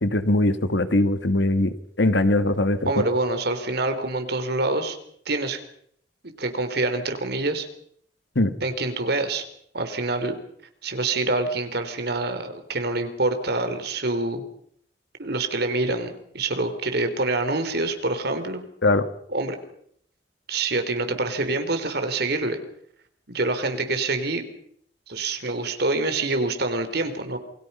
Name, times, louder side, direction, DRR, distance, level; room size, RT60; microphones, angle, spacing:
voice 1, 0.0-3.1 8.4-8.5 18.8-19.1, left 1 dB, 75° left, 11 dB, 1.8 m, -21 dB
voice 2, 2.9-5.0 5.2-5.6 6.2-7.7 8.6-9.4 9.7-10.4 10.8-14.4 15.2-18.6 19.3-19.6 20.5-22.6 23.3-24.4 25.1-27.4, right 2 dB, 60° right, 8 dB, 3.3 m, -26 dB
28.0 x 22.0 x 5.6 m, 0.67 s
head